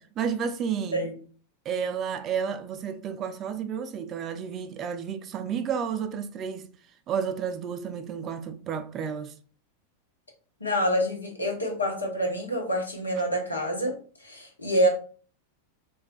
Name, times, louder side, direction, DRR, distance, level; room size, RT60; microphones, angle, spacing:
voice 1, 0.2-1.1 1.7-6.7 7.1-9.4, right 7 dB, 30° right, 0.3 m, -31 dB
voice 2, 10.6-14.9, equal, 80° left, 0.8 m, -27 dB
3.2 x 2.6 x 2.3 m
figure-of-eight pair, 90°, 0 cm